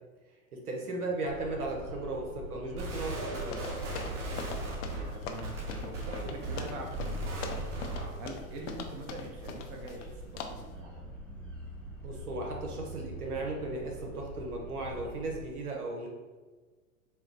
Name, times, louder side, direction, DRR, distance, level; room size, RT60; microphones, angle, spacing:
voice 1, 0.5-3.6 12.0-16.1, right 2 dB, 90° right, 0 dB, 1.0 m, -36 dB
sound 1, 1.3-15.5, equal, 5° left, 0.4 m, -45 dB
sound 2, 2.8-8.2, right 2 dB, 55° right, 1.3 m, -37 dB
sound 3, 3.5-10.1 10.4-10.7, left 5 dB, 55° left, 0.5 m, -42 dB
voice 2, 5.1-7.7 8.2-10.9, right 2 dB, 35° right, 1 dB, 0.7 m, -44 dB
4.4 x 2.0 x 3.8 m, 1.3 s
hypercardioid pair, 110°, 43 cm